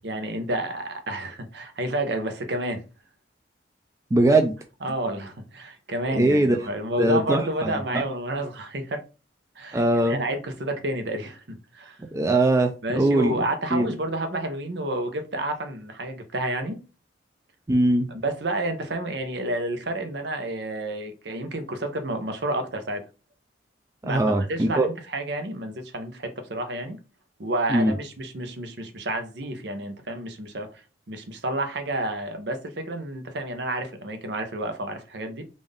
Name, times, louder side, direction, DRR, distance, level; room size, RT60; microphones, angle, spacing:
voice 1, 0.0-2.8 4.8-9.0 9.6-12.0 12.8-16.8 18.2-23.0 24.0-27.0 27.4-30.8 31.1-35.4, right 1 dB, 70° right, 0.8 m, -30 dB
voice 2, 4.1-4.5 6.1-6.6 7.0-8.0 9.7-10.2 12.1-13.3 13.7-13.9 17.7-18.1 24.1-24.9 27.7-27.9, right 1 dB, 15° right, 0.3 m, -21 dB
3.6 x 2.6 x 3.5 m
head